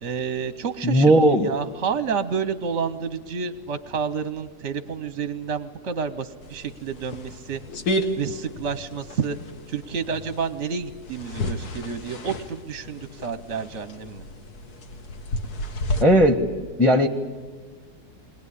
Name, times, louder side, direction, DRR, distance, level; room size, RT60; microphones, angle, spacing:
voice 1, 0.0-7.6 8.2-9.4 9.7-14.2, right 6 dB, 50° right, 12 dB, 0.9 m, -29 dB
voice 2, 0.8-1.5 16.0-16.4 16.8-17.1, equal, ahead, 7 dB, 0.9 m, -16 dB
sound 1, 6.4-16.0, left 1 dB, 60° left, 1.9 m, -32 dB
22.0 x 18.5 x 9.9 m, 1.5 s
omnidirectional pair, 1.9 m